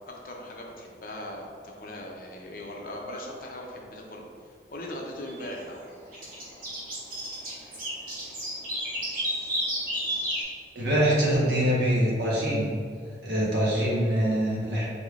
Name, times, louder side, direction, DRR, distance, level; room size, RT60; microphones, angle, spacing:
voice 1, 0.1-4.3 4.7-5.8, left 1 dB, 50° left, 0 dB, 0.6 m, -39 dB
sound 1, 5.3-5.5 6.1-10.4, equal, 50° right, 1.1 m, -31 dB
voice 2, 10.7-12.7 13.2-14.9, equal, 70° right, -6 dB, 1.2 m, -24 dB
4.2 x 3.4 x 2.4 m, 2.2 s
head